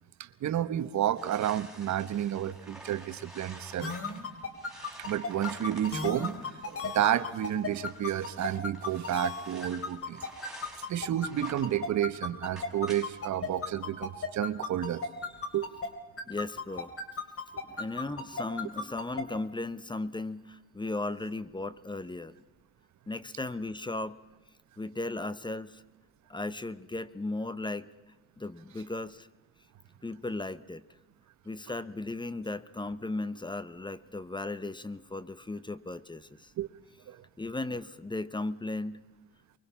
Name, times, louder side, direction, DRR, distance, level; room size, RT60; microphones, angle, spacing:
voice 1, 0.4-3.9 5.0-6.3 6.7-10.2 10.9-15.1 15.5-15.7 36.6-36.7 37.1-37.2, right 11 dB, 70° right, 14 dB, 1.2 m, -31 dB
sound 1, 1.2-11.8 12.2-13.3 13.6-13.7 14.0-14.1 14.5-14.6, right 1 dB, ahead, 5.7 m, -50 dB
sound 2, 3.8-15.9 16.2-19.2, left 4 dB, 50° left, 3.8 m, -34 dB
voice 2, 16.3-16.9 17.8-22.3 23.1-24.2 24.8-25.8 26.3-27.9 28.4-29.3 30.0-30.8 31.4-36.5 37.4-39.0, left 2 dB, 15° left, 15 dB, 1.0 m, -36 dB
24.5 x 23.0 x 5.7 m, 1.1 s
cardioid pair, 90°, 30 cm